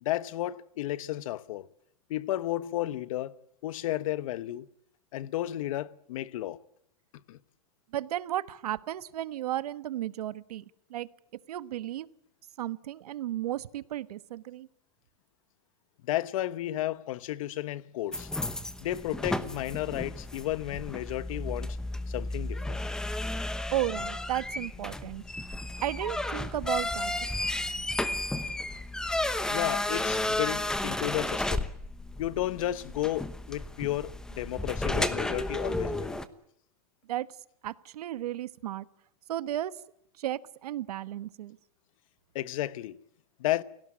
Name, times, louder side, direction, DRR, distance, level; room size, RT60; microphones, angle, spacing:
voice 1, 0.0-1.7 2.1-3.4 3.6-4.7 5.1-6.6 7.3-7.4 16.0-18.3 18.8-21.8 22.1-22.8 29.5-31.6 32.2-36.2 42.3-43.0 43.4-43.6, left 14 dB, 60° left, 1.1 m, -33 dB
voice 2, 7.9-10.6 10.9-11.1 11.5-12.1 12.6-14.7 23.7-25.2 25.8-27.1 27.4-27.6 37.1-37.3 37.6-38.9 39.3-39.8 40.2-41.6, right 13 dB, 85° right, 1.2 m, -34 dB
sound 1, 18.1-36.2, left 1 dB, 5° left, 1.0 m, -33 dB
29.5 x 17.5 x 8.7 m
supercardioid pair, 160°, 19 cm